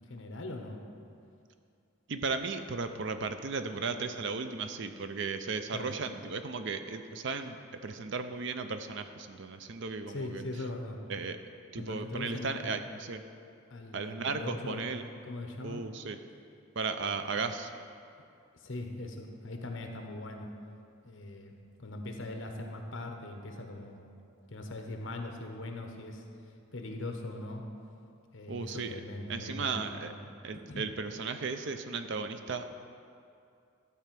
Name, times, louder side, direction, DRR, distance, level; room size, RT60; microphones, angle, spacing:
voice 1, 0.1-0.8 5.7-5.9 10.1-11.0 11.8-12.9 13.7-14.9 15.3-15.8 17.0-17.4 18.6-20.5 21.0-21.5 21.8-24.0 24.5-26.2 26.7-27.6 28.3-30.2 30.5-30.9, left 2 dB, 60° left, 3 dB, 1.1 m, -41 dB
voice 2, 2.1-7.6 7.8-10.4 11.1-11.4 11.7-13.2 13.9-15.0 15.6-16.2 16.8-17.7 28.5-29.0 29.3-30.1 30.4-32.7, right 4 dB, 60° right, 8 dB, 0.5 m, -35 dB
12.0 x 4.5 x 7.6 m, 2.5 s
head